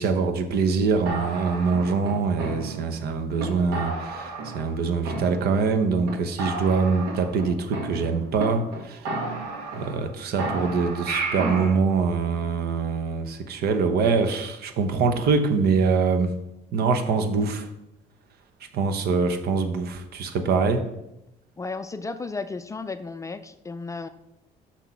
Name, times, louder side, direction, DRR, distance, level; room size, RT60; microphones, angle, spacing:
voice 1, 0.0-9.1 9.7-16.4 16.7-17.7 18.7-20.9, right 4 dB, 70° right, 8 dB, 1.0 m, -24 dB
sound 1, 1.1-3.0 3.4-3.5 3.7-4.8 5.1-5.8 6.1-6.2 6.4-8.4 8.7-8.8 9.1-10.1 10.4-11.7, right 3 dB, 90° right, 1.7 m, -32 dB
voice 2, 21.6-24.1, left 3 dB, 20° left, 11 dB, 0.4 m, -34 dB
6.1 x 6.1 x 5.7 m, 0.89 s
cardioid pair, 110°, 17 cm